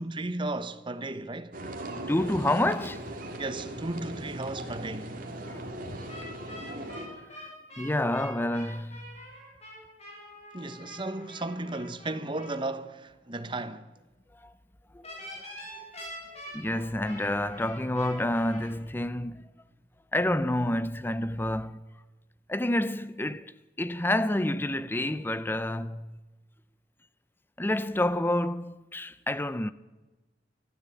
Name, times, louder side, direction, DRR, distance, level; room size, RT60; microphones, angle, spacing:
voice 1, 0.0-1.6 3.3-5.2 10.5-13.9, right 2 dB, 25° right, 1.0 m, -35 dB
sound 1, 1.5-7.1, right 1 dB, 50° right, 2.7 m, -39 dB
voice 2, 2.1-3.0 5.5-5.6 7.8-9.1 14.4-14.5 14.9-15.1 16.5-19.4 20.1-21.8 22.5-26.1 27.6-29.7, left 1 dB, 10° left, 0.5 m, -28 dB
sound 2, 6.1-12.6 15.0-18.7, equal, 35° left, 7.4 m, -45 dB
23.5 x 13.0 x 8.4 m
head